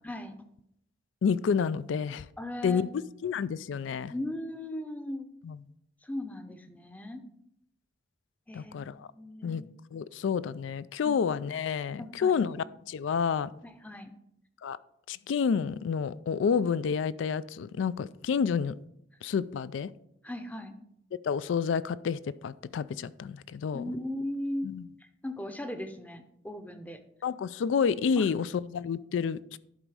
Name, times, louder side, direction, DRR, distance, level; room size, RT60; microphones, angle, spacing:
voice 1, 0.0-0.4 2.4-2.9 4.1-5.3 6.0-7.2 8.5-9.6 11.0-11.2 12.0-12.4 13.6-14.1 20.2-20.7 23.7-24.7 25.0-27.0 28.2-28.3, left 1 dB, 10° left, 8 dB, 0.6 m, -37 dB
voice 2, 1.2-2.3 2.6-2.9 3.2-4.1 5.4-5.6 8.5-9.1 9.4-13.5 14.6-14.8 15.1-18.7 19.2-19.9 21.2-23.8 24.6-24.8 27.2-29.6, left 6 dB, 90° left, 18 dB, 0.3 m, -29 dB
11.0 x 4.0 x 4.7 m, 0.78 s
head